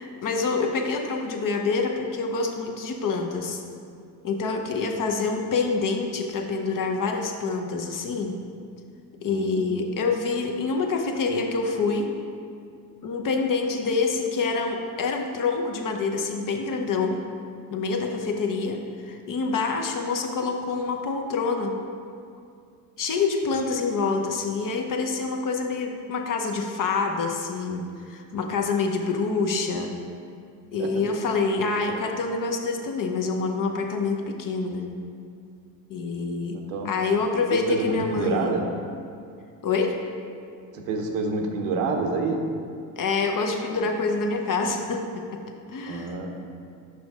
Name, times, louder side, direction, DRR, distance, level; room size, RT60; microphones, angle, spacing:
voice 1, 0.0-3.6 4.2-8.4 9.2-12.1 13.0-17.2 17.7-21.8 23.0-29.9 30.7-34.9 35.9-38.6 39.6-40.0 43.0-45.4 45.7-46.2, left 4 dB, 40° left, 3 dB, 0.8 m, -26 dB
voice 2, 9.3-9.8 30.8-31.0 36.5-36.9 37.5-38.7 40.7-42.6 43.7-43.9 45.9-46.4, right 3 dB, 80° right, 3 dB, 0.9 m, -28 dB
6.0 x 5.1 x 3.6 m, 2.3 s
hypercardioid pair, 65°, 48 cm